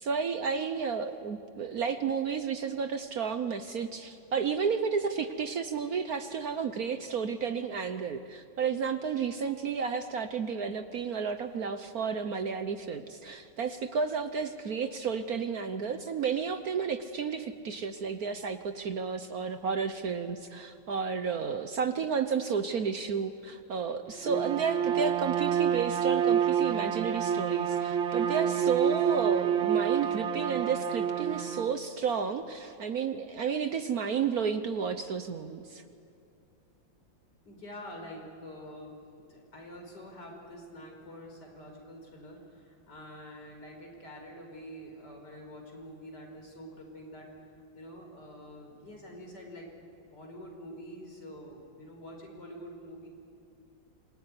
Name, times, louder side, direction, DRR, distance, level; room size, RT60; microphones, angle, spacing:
voice 1, 0.0-35.8, right 6 dB, 55° right, 9 dB, 1.3 m, -32 dB
Bowed string instrument, 24.2-31.7, right 8 dB, 85° right, 2.2 m, -28 dB
voice 2, 37.4-47.3 47.7-49.7 50.1-53.1, equal, 60° left, 1 dB, 5.5 m, -46 dB
27.0 x 21.0 x 9.8 m, 2.5 s
omnidirectional pair, 2.1 m